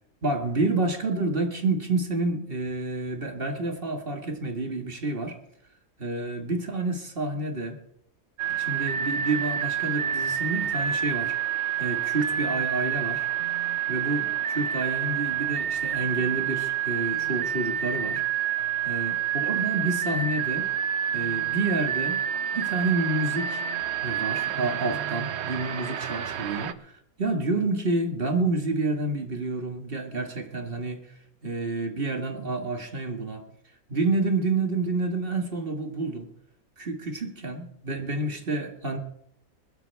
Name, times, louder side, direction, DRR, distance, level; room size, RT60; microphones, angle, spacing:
voice 1, 0.2-5.4 6.0-7.8 8.6-11.3 11.8-13.3 13.9-18.2 18.8-20.7 21.1-22.2 22.5-23.6 24.0-26.9 27.2-31.0 31.4-33.5 33.9-36.3 36.8-39.0, right 2 dB, 40° right, 4 dB, 2.0 m, -29 dB
sound 1, 8.4-26.7, right 10 dB, 60° right, 0.9 m, -28 dB
21.5 x 12.5 x 3.5 m, 0.69 s
omnidirectional pair, 1.5 m